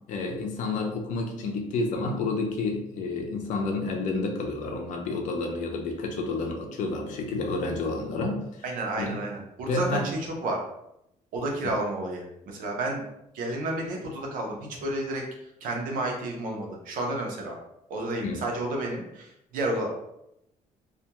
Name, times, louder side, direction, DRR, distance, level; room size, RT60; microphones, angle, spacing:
voice 1, 0.1-8.4 9.0-9.2 9.7-10.1 18.2-18.4, left 3 dB, 70° left, 2 dB, 0.5 m, -30 dB
voice 2, 8.6-10.6 11.3-13.0 13.3-15.2 15.6-17.5 17.9-19.9, right 2 dB, 90° right, 0 dB, 0.7 m, -31 dB
2.4 x 2.2 x 2.9 m, 0.82 s
cardioid pair, 170°, 14 cm